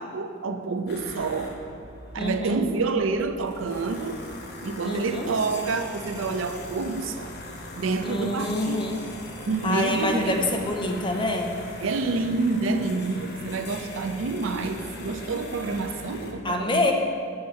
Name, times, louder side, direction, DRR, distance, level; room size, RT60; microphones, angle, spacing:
voice 1, 0.0-1.6 2.1-4.2 4.6-7.3 7.7-8.9 9.4-10.5 11.8-16.9, right 3 dB, 90° right, 8 dB, 0.5 m, -28 dB
sound 1, 0.9-16.3, left 1 dB, 55° left, 1.0 m, -40 dB
voice 2, 2.2-2.6 4.8-5.3 8.0-9.0 9.6-11.6 16.4-16.9, left 2 dB, 25° left, 2 dB, 0.8 m, -26 dB
7.2 x 4.6 x 6.6 m, 2.4 s
head